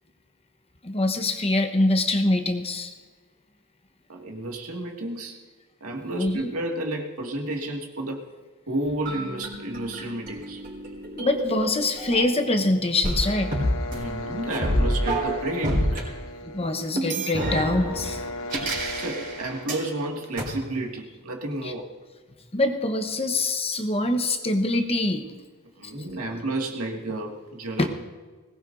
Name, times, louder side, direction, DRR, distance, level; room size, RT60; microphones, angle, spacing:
voice 1, 0.8-2.9 6.2-6.5 11.2-13.5 16.4-18.2 21.6-21.7 22.5-25.3 25.8-25.9 27.8-27.9, left 2 dB, 25° left, 5 dB, 1.0 m, -24 dB
voice 2, 4.1-5.4 5.8-8.3 8.7-10.6 13.9-16.0 18.7-21.9 25.8-27.9, right 1 dB, 75° right, 1 dB, 2.0 m, -31 dB
sound 1, 9.0-12.6 13.0-16.0 17.0-19.8 20.4-20.5, equal, 40° right, 4.1 m, -28 dB
sound 2, 13.1-20.9, left 1 dB, 65° left, 1.2 m, -37 dB
21.0 x 18.5 x 2.6 m, 1.4 s
head